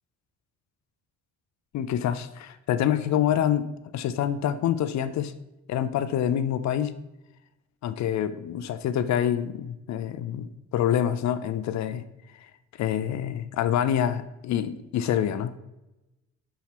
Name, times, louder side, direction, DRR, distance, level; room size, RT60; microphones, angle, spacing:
voice 1, 1.7-5.3 5.7-7.0 7.8-12.0 12.8-15.5, left 10 dB, 65° left, 13 dB, 0.5 m, -26 dB
4.8 x 4.2 x 5.8 m, 0.97 s
cardioid pair, 90°, 30 cm